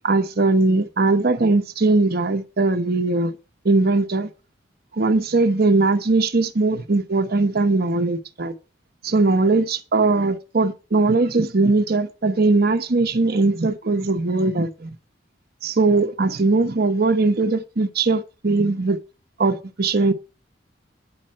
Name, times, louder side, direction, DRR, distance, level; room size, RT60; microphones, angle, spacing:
voice 1, 0.0-3.4 3.6-4.3 4.9-8.5 9.0-14.9 15.6-19.0 19.4-20.1, right 3 dB, 55° right, 0.9 m, -20 dB
9.6 x 5.4 x 7.5 m
head